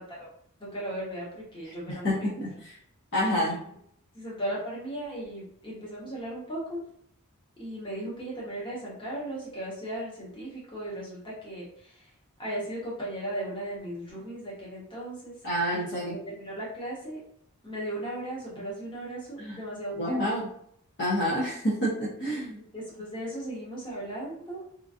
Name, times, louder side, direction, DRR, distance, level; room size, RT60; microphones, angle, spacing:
voice 1, 0.6-2.3 3.2-3.6 4.1-6.8 7.6-12.0 12.4-15.3 15.7-17.2 17.6-20.2 22.3-22.4 22.7-24.6, right 1 dB, 20° left, -6 dB, 1.0 m, -37 dB
voice 2, 1.7-2.7 3.1-3.6 15.4-16.2 19.4-19.6 20.0-20.4 21.0-22.6, equal, 50° left, -6 dB, 0.7 m, -28 dB
3.0 x 2.5 x 2.4 m, 0.67 s
head